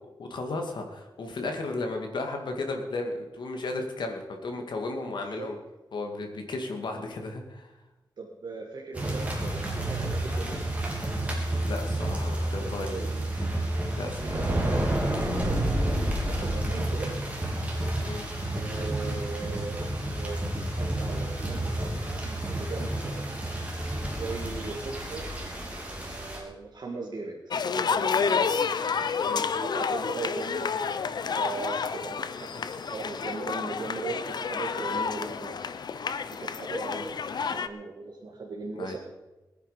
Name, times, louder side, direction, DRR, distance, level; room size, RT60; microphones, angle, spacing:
voice 1, 0.3-5.6 5.9-7.7 11.6-13.0 13.9-14.3 18.0-18.2 28.3-28.4 29.3-29.4 36.9-37.1 38.7-39.0, left 2 dB, 90° left, 3 dB, 2.4 m, -34 dB
voice 2, 5.1-5.5 8.2-10.6 12.4-13.2 14.2-17.1 18.5-23.3 24.1-25.3 25.8-27.4 27.7-28.3 29.5-30.7 31.3-35.7 36.3-37.2 37.5-39.0, right 4 dB, 70° right, -2 dB, 2.1 m, -39 dB
sound 1, 8.9-26.4, right 1 dB, 15° right, 3.3 m, -30 dB
sound 2, 27.5-37.7, left 6 dB, 70° left, 0.7 m, -30 dB
20.5 x 9.9 x 5.1 m, 1.1 s
wide cardioid pair, 150°, 8 cm